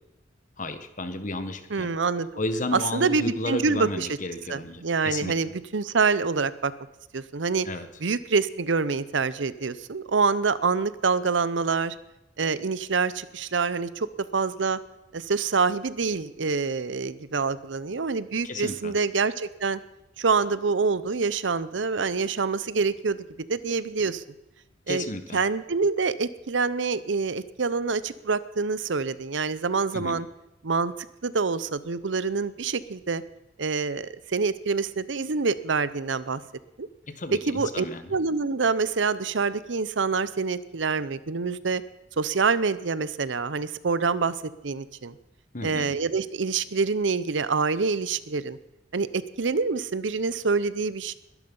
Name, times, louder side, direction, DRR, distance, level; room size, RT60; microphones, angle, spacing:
voice 1, 0.6-1.9 2.4-5.5 7.7-7.9 18.4-18.9 24.9-25.4 29.9-30.2 37.1-38.1 45.5-45.9, left 2 dB, 45° left, 10 dB, 1.5 m, -33 dB
voice 2, 1.7-2.3 2.7-4.1 4.5-6.7 7.1-7.7 8.0-11.9 12.4-14.8 15.1-19.8 20.2-24.2 24.9-25.0 25.3-30.3 30.6-30.9 31.2-33.2 33.6-36.4 36.8-36.9 37.3-41.8 42.2-44.3 44.6-45.1 45.6-48.6 48.9-51.1, right 4 dB, 80° right, 16 dB, 0.8 m, -26 dB
21.5 x 12.0 x 5.5 m, 0.97 s
head